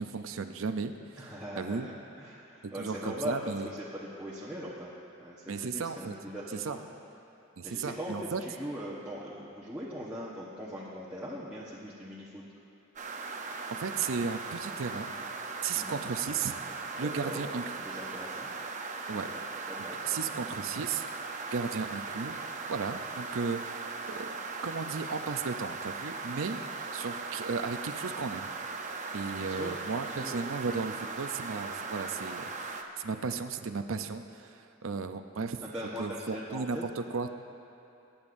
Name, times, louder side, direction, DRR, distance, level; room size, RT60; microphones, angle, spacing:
voice 1, 0.0-1.9 2.6-3.7 5.5-6.1 6.5-6.8 7.6-8.4 13.7-15.1 15.6-16.7 17.0-17.7 19.1-19.3 20.0-21.0 21.5-24.4 24.6-26.6 26.9-28.5 29.1-35.6 36.0-37.3, right 5 dB, 70° right, 8 dB, 0.6 m, -35 dB
voice 2, 1.2-1.9 2.2-4.9 5.2-6.8 7.6-12.4 15.7-16.0 16.9-17.4 17.8-18.5 19.2-19.4 19.7-20.0 20.3-20.4 29.2-30.3 35.6-36.8, equal, 5° right, -9 dB, 1.1 m, -40 dB
sound 1, 13.0-32.8, right 4 dB, 35° right, 0.7 m, -39 dB
23.5 x 10.0 x 2.6 m, 2.9 s
head